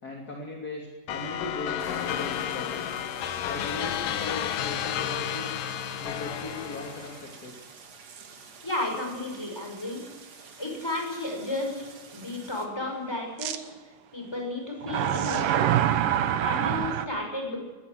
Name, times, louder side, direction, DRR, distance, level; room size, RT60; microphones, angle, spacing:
voice 1, 0.0-3.0 3.5-5.6 6.0-7.7, left 2 dB, 30° left, 0 dB, 3.1 m, -39 dB
sound 1, 1.1-7.3, left 10 dB, 85° left, 2.7 m, -32 dB
Stream, 1.8-12.7, right 5 dB, 55° right, 3.6 m, -49 dB
sound 2, 8.1-8.2 8.9-9.0 13.4-13.6 14.8-17.1, right 10 dB, 90° right, 2.8 m, -25 dB
voice 2, 8.6-10.0 10.6-13.7 14.1-15.7 16.4-17.6, left 2 dB, 5° left, 1 dB, 5.9 m, -33 dB
20.5 x 18.0 x 7.9 m, 1.3 s
omnidirectional pair, 3.8 m